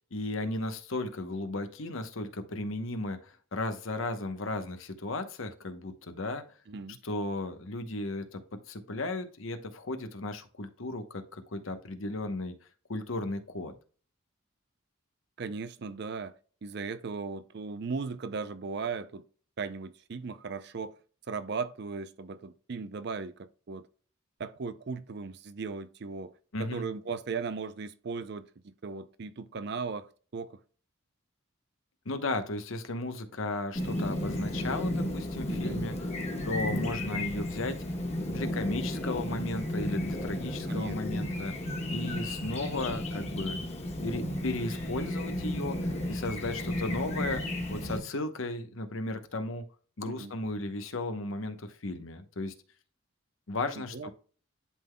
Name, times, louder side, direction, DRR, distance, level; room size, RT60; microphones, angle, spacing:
voice 1, 0.1-6.4 7.0-8.4 8.7-12.5 12.9-13.7 26.5-26.8 32.0-35.9 36.4-37.8 38.3-41.5 41.9-43.6 44.0-47.4 47.7-49.6 50.0-52.5 53.5-54.1, left 2 dB, 75° left, 0.9 m, -35 dB
voice 2, 6.7-7.0 15.4-16.4 16.6-19.3 19.6-20.9 21.3-23.9 24.4-26.3 26.6-30.6 35.5-35.8 40.7-41.3 50.1-50.3 53.8-54.1, right 4 dB, 50° right, 0.4 m, -37 dB
Chirp tweet, 33.8-48.0, left 1 dB, 30° left, 1.3 m, -33 dB
11.0 x 3.8 x 2.2 m
head